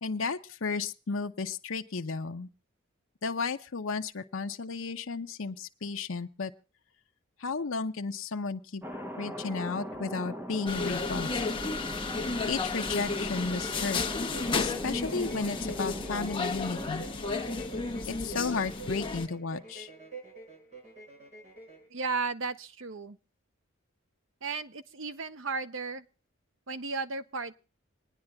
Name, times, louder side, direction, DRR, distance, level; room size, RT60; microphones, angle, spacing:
voice 1, 0.0-2.5 3.2-6.5 7.4-8.8 9.2-11.4 12.5-14.0 14.6-17.1 18.1-19.9, left 4 dB, 75° left, 5 dB, 0.7 m, -33 dB
Thunder, 8.8-16.9, equal, 10° right, 0.8 m, -40 dB
sound 1, 10.7-19.3, left 3 dB, 25° left, 1.2 m, -33 dB
sound 2, 13.3-21.9, right 3 dB, 35° right, 5.9 m, -47 dB
voice 2, 21.9-23.2 24.4-26.0 26.7-27.6, right 4 dB, 70° right, 11 dB, 0.8 m, -34 dB
26.5 x 9.8 x 2.3 m, 0.35 s
head